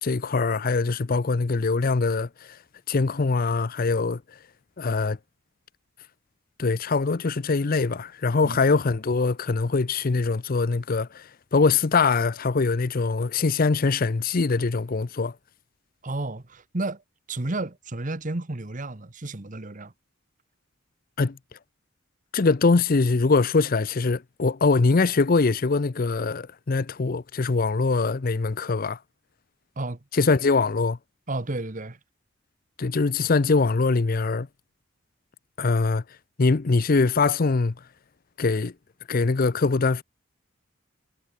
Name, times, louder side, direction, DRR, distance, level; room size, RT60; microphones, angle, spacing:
voice 1, 0.0-2.6 2.9-4.2 4.8-5.2 6.6-15.3 21.2-21.4 22.3-29.0 30.1-31.0 32.8-34.5 35.6-36.0 36.4-37.7 38.4-38.7 39.1-40.0, left 4 dB, 45° left, 0.6 m, -23 dB
voice 2, 16.0-17.0 17.3-19.9 29.8-30.0 31.3-32.0, right 2 dB, 40° right, 1.2 m, -32 dB
head